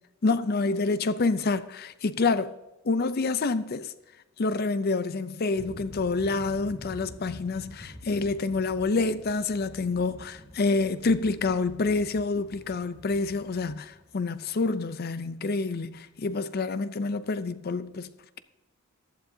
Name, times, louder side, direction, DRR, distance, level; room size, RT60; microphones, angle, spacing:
voice 1, 0.2-2.5 2.8-3.9 4.4-18.1, left 3 dB, 45° left, 0.5 m, -27 dB
sound 1, 5.5-14.9, equal, 65° left, 3.0 m, -47 dB
15.0 x 11.5 x 2.7 m
head